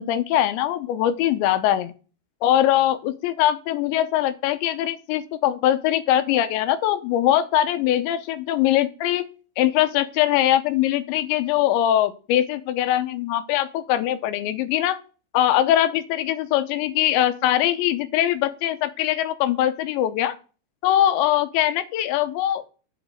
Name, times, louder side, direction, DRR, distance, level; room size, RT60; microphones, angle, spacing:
voice 1, 0.0-1.9 2.4-9.3 9.6-15.0 15.3-20.4 20.8-22.7, left 12 dB, 85° left, 11 dB, 3.0 m, -22 dB
8.0 x 5.1 x 7.6 m, 0.36 s
omnidirectional pair, 5.3 m